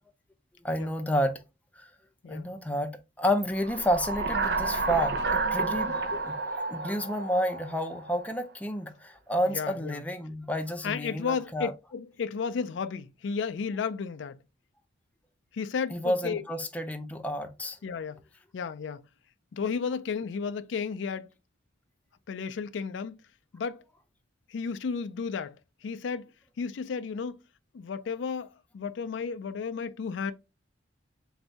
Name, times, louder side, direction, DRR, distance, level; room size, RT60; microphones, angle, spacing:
voice 1, 0.6-1.4 1.8-1.9 2.3-11.7 15.9-17.8, equal, 10° left, 0.5 m, -30 dB
sound 1, 3.6-8.2, right 3 dB, 60° right, 0.7 m, -30 dB
voice 2, 9.4-10.0 10.8-14.4 15.5-16.4 17.8-18.2 18.5-19.0 19.5-21.3 22.3-23.1 23.5-23.8 24.5-25.5 25.8-26.3 26.6-27.4 27.7-30.3, left 5 dB, 75° left, 0.4 m, -33 dB
4.0 x 2.6 x 3.3 m
head